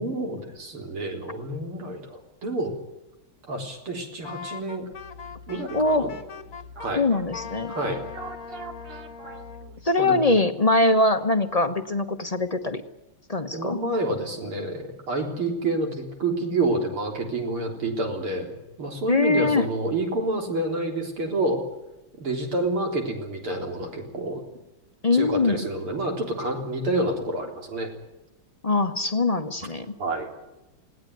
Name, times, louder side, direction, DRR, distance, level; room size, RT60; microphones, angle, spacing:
voice 1, 0.0-2.7 3.5-4.9 5.5-6.1 6.8-7.0 7.7-8.0 10.0-10.3 13.5-21.6 22.2-24.4 25.1-27.9 30.0-30.3, right 2 dB, 85° right, 2 dB, 4.6 m, -28 dB
Wind instrument woodwind instrument, 4.2-6.9 7.3-9.7, left 6 dB, 45° left, 1.5 m, -40 dB
sound 1, 4.9-10.0, right 1 dB, 55° right, 3.0 m, -43 dB
voice 2, 5.7-6.1 7.0-7.7 9.8-12.8 13.3-13.8 19.1-19.7 25.0-25.6 28.6-29.9, left 2 dB, 30° left, 8 dB, 0.7 m, -22 dB
20.5 x 18.0 x 9.5 m, 0.98 s
omnidirectional pair, 2.3 m